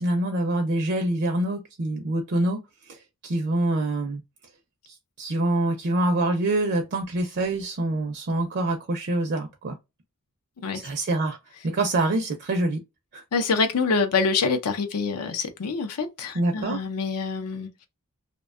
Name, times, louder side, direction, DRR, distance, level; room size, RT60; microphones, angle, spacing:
voice 1, 0.0-2.6 2.9-4.2 4.9-9.8 10.7-11.4 11.6-12.8 13.1-13.2 16.3-16.8, right 2 dB, 50° right, 0.4 m, -25 dB
voice 2, 13.3-17.9, left 4 dB, 85° left, 0.5 m, -26 dB
2.5 x 2.2 x 2.4 m
head